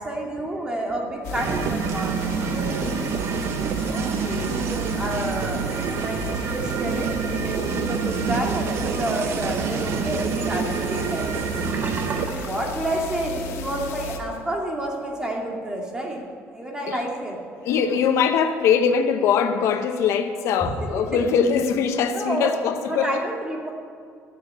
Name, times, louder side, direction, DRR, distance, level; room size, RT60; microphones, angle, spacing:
voice 1, 0.0-3.1 3.9-5.6 5.9-11.4 12.1-16.2 16.5-17.4 20.6-20.9 22.1-22.5 22.9-23.7, right 1 dB, 15° right, 2.1 m, -30 dB
sound 1, 1.2-14.2, left 3 dB, 90° left, 1.5 m, -34 dB
sound 2, 1.3-12.3, right 7 dB, 55° right, 0.7 m, -27 dB
Sink (filling or washing), 11.6-13.6 13.9-14.2 14.6-14.7, right 5 dB, 30° right, 0.9 m, -35 dB
voice 2, 17.6-23.2, left 7 dB, 65° left, 0.8 m, -22 dB
12.5 x 7.4 x 9.6 m
cardioid pair, 155°, 5 cm